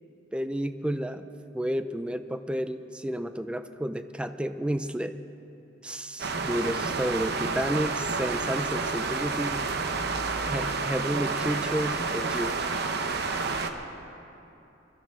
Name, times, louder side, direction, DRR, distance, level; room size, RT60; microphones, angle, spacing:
voice 1, 0.3-1.3 1.5-5.2 5.8-9.6 10.5-12.7, equal, 5° right, 10 dB, 0.4 m, -31 dB
sound 1, 6.2-13.7, right 4 dB, 60° right, 0.9 m, -30 dB
22.5 x 13.5 x 3.7 m, 2.9 s
head